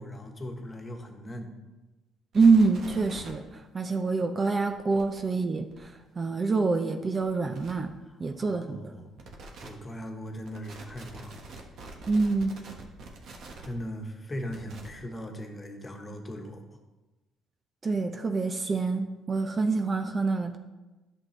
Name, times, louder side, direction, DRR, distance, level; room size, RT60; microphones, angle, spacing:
voice 1, 0.0-1.5 8.0-9.2 9.6-11.4 13.6-16.8, equal, 25° left, 3 dB, 1.3 m, -39 dB
voice 2, 2.3-7.9 8.2-8.9 12.1-12.5 17.8-20.6, right 4 dB, 35° right, 6 dB, 0.6 m, -26 dB
sound 1, 2.3-3.3 4.7-5.0 5.7-5.8 7.2-7.3 7.5-7.7 9.2-9.7 10.4-13.7 14.5-14.9, right 3 dB, 65° right, 1.3 m, -45 dB
10.5 x 6.3 x 3.3 m, 1.1 s
supercardioid pair, 80°, 0 cm